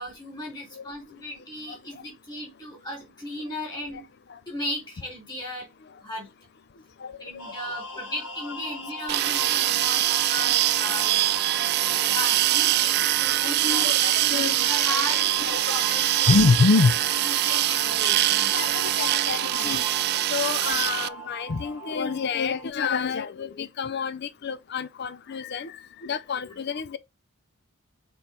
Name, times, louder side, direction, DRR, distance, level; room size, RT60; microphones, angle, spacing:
voice 1, 0.0-4.0 4.5-5.7 6.0-6.3 7.2-10.0 10.3-11.2 11.6-13.8 14.6-16.4 17.2-18.5, equal, 20° left, 3.7 m, -36 dB
voice 2, 7.0-7.5 10.4-10.6 12.0-12.2 12.8-12.9 13.4-15.2 15.5-15.9 16.3-16.9 17.6-18.0 18.5-19.9 20.3-27.0, left 4 dB, 50° left, 0.4 m, -27 dB
sound 1, 7.4-22.7, equal, 85° left, 3.4 m, -39 dB
sound 2, 9.1-21.1, right 14 dB, 50° right, 0.3 m, -23 dB
6.3 x 4.4 x 5.1 m
head